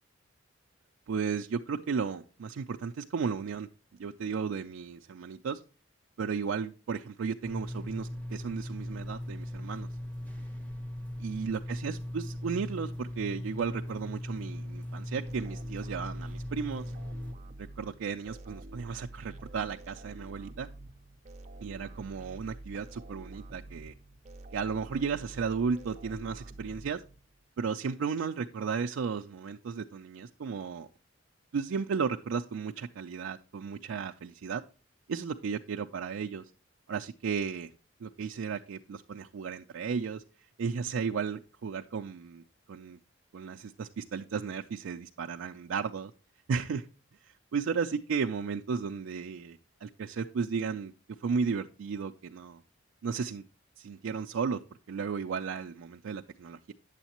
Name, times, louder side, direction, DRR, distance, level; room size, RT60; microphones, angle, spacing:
voice 1, 1.1-3.7 4.0-5.6 6.2-9.9 11.2-16.9 17.6-20.7 21.6-23.9 24.5-27.0 27.6-30.9 31.5-34.6 35.1-36.5 36.9-37.7 38.0-40.2 40.6-42.4 42.7-43.0 43.3-46.1 46.5-46.8 47.2-50.9 51.2-52.6 53.0-53.4 53.8-54.6 54.9-56.7, right 5 dB, 90° right, 4 dB, 0.4 m, -34 dB
sound 1, 7.4-17.3, left 1 dB, 10° left, 1.1 m, -39 dB
sound 2, 15.2-27.5, right 2 dB, 35° right, 0.6 m, -48 dB
9.0 x 7.2 x 2.9 m, 0.34 s
head